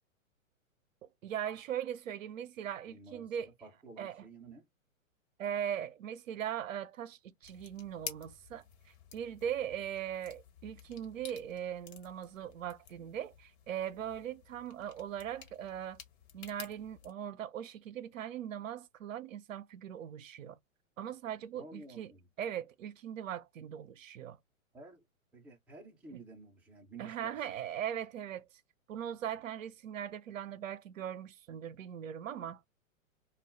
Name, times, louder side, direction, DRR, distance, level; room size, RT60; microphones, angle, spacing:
voice 1, 1.2-3.5 4.0-4.2 5.4-16.0 16.3-20.6 21.0-22.1 22.4-24.4 27.0-28.5 28.9-32.6, right 9 dB, 70° right, 0.6 m, -40 dB
voice 2, 2.9-4.7 21.5-22.2 24.7-25.1 25.3-27.6, right 3 dB, 5° right, 0.5 m, -52 dB
sound 1, 7.4-17.1, left 7 dB, 50° left, 1.3 m, -52 dB
2.3 x 2.1 x 3.5 m
hypercardioid pair, 120°, 41 cm